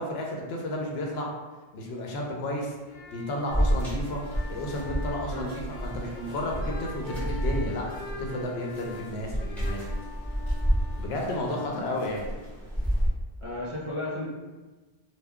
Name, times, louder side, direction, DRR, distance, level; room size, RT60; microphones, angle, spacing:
voice 1, 0.0-1.3 1.7-2.7 3.1-4.2 4.5-7.9 8.2-9.8 11.0-12.3, left 1 dB, 80° left, -1 dB, 0.8 m, -32 dB
sound 1, 2.8-12.6, left 4 dB, 50° left, 0.6 m, -44 dB
sound 2, 3.5-13.1, equal, ahead, 0.8 m, -31 dB
voice 2, 13.4-14.3, left 1 dB, 40° right, -7 dB, 0.6 m, -34 dB
2.2 x 2.2 x 3.5 m, 1.2 s
omnidirectional pair, 1.0 m